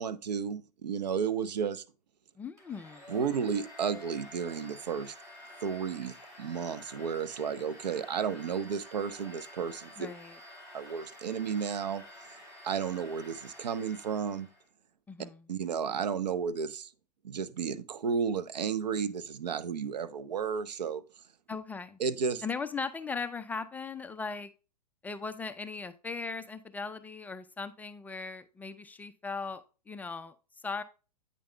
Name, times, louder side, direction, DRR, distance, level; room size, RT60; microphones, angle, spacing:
voice 1, 0.0-1.8 3.1-5.1 5.6-10.1 10.7-12.0 12.6-14.5 15.5-16.9 17.2-21.0 22.0-22.4, right 6 dB, 80° right, 0.8 m, -33 dB
voice 2, 2.4-3.0 10.0-10.4 15.1-15.5 21.5-22.0 22.4-24.5 25.0-30.8, left 4 dB, 10° left, 0.3 m, -38 dB
Domestic sounds home sounds, 2.6-14.7, left 1 dB, 15° right, 2.4 m, -50 dB
8.8 x 5.2 x 3.2 m
hypercardioid pair, 125°, 21 cm